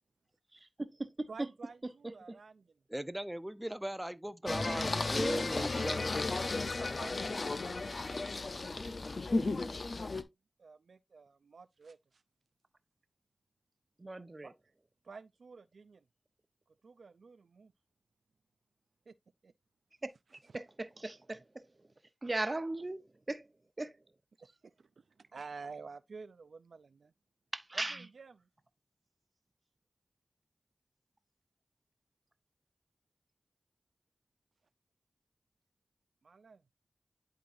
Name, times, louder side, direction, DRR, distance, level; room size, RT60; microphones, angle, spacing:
voice 1, 0.5-1.5 2.0-2.1 14.0-14.5 20.0-20.1 20.5-21.7 22.2-23.5 23.8-24.0 27.5-28.1, right 2 dB, 40° right, 0.9 m, -38 dB
voice 2, 1.3-2.5 7.0-9.7 10.6-12.0 14.4-14.5 15.1-16.0 16.8-17.7 19.1-19.2 25.3-27.1 28.2-28.3 36.2-36.6, right 4 dB, 85° right, 0.3 m, -51 dB
voice 3, 2.9-6.1, right 1 dB, 10° right, 0.6 m, -38 dB
Singing, 4.5-10.2, left 3 dB, 65° left, 0.6 m, -34 dB
11.5 x 3.9 x 2.6 m
cardioid pair, 40°, 0 cm